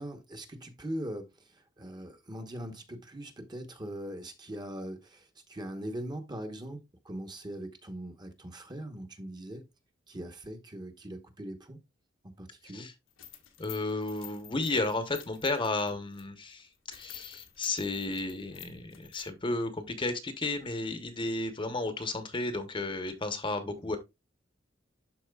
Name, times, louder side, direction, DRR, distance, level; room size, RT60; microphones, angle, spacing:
voice 1, 0.0-9.7 10.1-11.8 12.2-12.9 23.8-23.9, right 1 dB, 20° right, 1.0 m, -41 dB
sound 1, 13.1-16.2 16.6-16.7 16.9-19.3, left 12 dB, 80° left, 1.3 m, -50 dB
voice 2, 13.6-24.0, left 2 dB, 25° left, 0.9 m, -33 dB
12.0 x 4.2 x 2.3 m
head